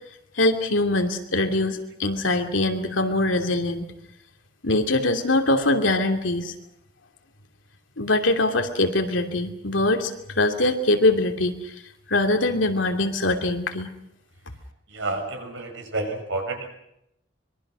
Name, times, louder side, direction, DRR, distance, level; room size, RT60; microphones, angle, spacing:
voice 1, 0.4-3.9 4.6-6.5 8.0-11.6 12.1-13.9, left 2 dB, 85° left, 5 dB, 2.9 m, -23 dB
voice 2, 14.9-16.7, right 2 dB, 80° right, 3 dB, 6.5 m, -30 dB
25.0 x 23.0 x 6.3 m, 0.82 s
head